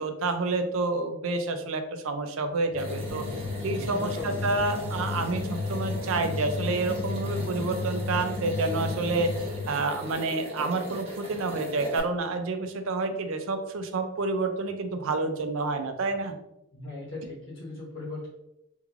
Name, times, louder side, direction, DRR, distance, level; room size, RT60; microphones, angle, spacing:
voice 1, 0.0-3.3 3.6-16.4, right 3 dB, 65° right, 7 dB, 0.4 m, -29 dB
sound 1, 2.7-10.0, left 3 dB, 80° left, 1.5 m, -34 dB
sound 2, 2.8-12.0, equal, 25° right, 0.8 m, -39 dB
sound 3, 3.0-5.2 5.5-8.9, left 2 dB, 10° left, 0.6 m, -47 dB
voice 2, 3.9-4.6 16.7-18.3, left 2 dB, 55° left, -8 dB, 1.0 m, -38 dB
3.5 x 3.1 x 2.4 m, 0.87 s
head